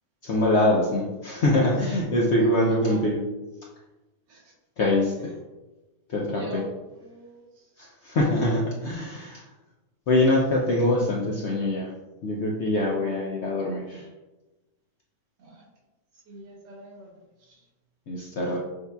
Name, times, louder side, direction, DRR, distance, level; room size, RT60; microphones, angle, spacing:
voice 1, 0.2-3.2 4.8-5.1 6.1-6.6 7.8-9.4 10.1-11.9 12.2-14.0 18.1-18.6, left 1 dB, 80° left, -3 dB, 0.6 m, -24 dB
voice 2, 2.6-3.0 4.3-4.5 5.2-5.4 6.3-7.7 15.4-15.6 16.3-17.1 17.4-17.7, right 1 dB, 85° right, -1 dB, 1.6 m, -43 dB
6.4 x 2.7 x 2.2 m, 1.1 s
omnidirectional pair, 1.8 m